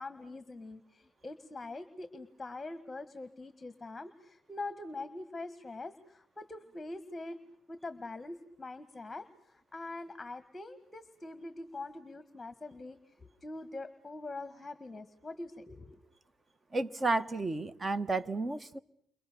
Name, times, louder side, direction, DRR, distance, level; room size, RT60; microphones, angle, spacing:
voice 1, 0.0-7.4 7.7-16.0, left 2 dB, 20° left, 1.7 m, -44 dB
voice 2, 16.7-18.8, right 3 dB, 30° right, 1.2 m, -32 dB
29.5 x 24.5 x 6.9 m
cardioid pair, 90°, 0 cm